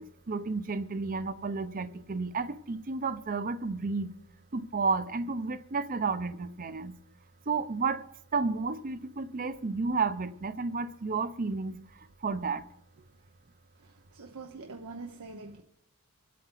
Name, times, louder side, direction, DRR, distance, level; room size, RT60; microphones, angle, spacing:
voice 1, 0.0-4.1 4.5-6.9 7.5-8.1 8.3-12.7, right 4 dB, 40° right, 0.6 m, -32 dB
voice 2, 13.8-15.6, right 3 dB, 90° right, 0.9 m, -44 dB
25.0 x 8.5 x 3.9 m
head